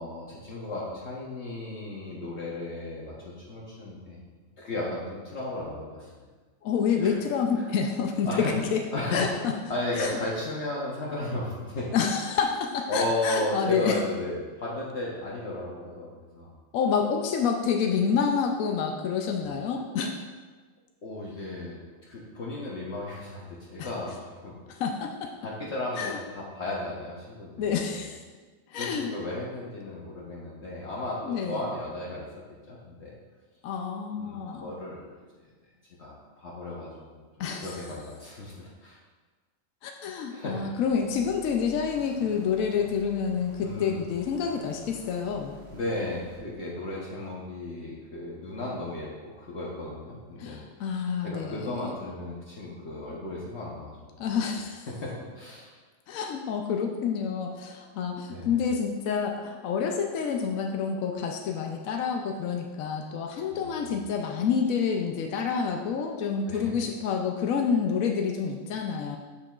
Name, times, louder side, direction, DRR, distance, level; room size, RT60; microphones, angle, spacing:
voice 1, 0.0-4.2 4.6-6.3 7.0-7.1 7.6-7.7 8.2-8.5 8.9-9.2 9.7-11.9 12.9-16.5 21.0-21.8 22.1-24.6 25.4-27.7 28.7-32.3 32.7-33.1 34.2-35.5 36.0-37.2 37.6-39.0 40.3-40.7 43.6-44.0 45.7-50.6 51.2-54.0 54.9-55.7 57.8-57.9 58.3-58.6 63.5-64.0 66.5-66.7, left 2 dB, 55° left, -5 dB, 1.2 m, -35 dB
voice 2, 6.6-8.8 9.1-9.5 10.0-10.2 11.9-14.0 16.7-20.2 23.8-23.9 24.7-25.3 26.0-26.2 27.6-28.2 28.7-29.1 31.2-31.6 33.6-34.7 37.4-37.8 39.8-45.5 50.4-51.9 54.2-54.9 56.1-69.2, left 6 dB, 80° left, 2 dB, 1.0 m, -28 dB
sound 1, 40.9-46.4, left 1 dB, 90° right, 1.8 m, -49 dB
7.5 x 6.8 x 2.4 m, 1.4 s
omnidirectional pair, 1.4 m